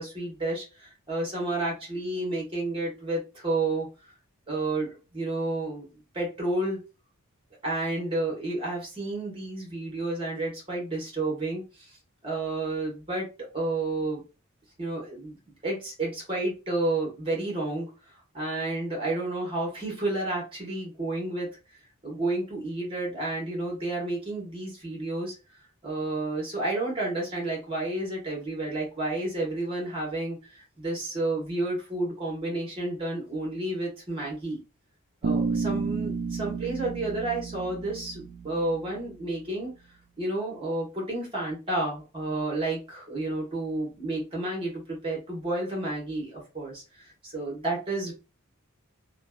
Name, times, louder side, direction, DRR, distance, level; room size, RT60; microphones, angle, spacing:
voice 1, 0.0-3.9 4.5-6.8 7.6-12.0 12.2-13.3 13.5-14.2 14.8-15.4 15.6-25.3 25.8-34.6 35.2-39.7 40.2-48.1, right 2 dB, 25° right, -2 dB, 1.2 m, -31 dB
Bass guitar, 35.2-39.3, right 4 dB, 75° right, 0.4 m, -31 dB
2.8 x 2.3 x 2.3 m, 0.31 s
head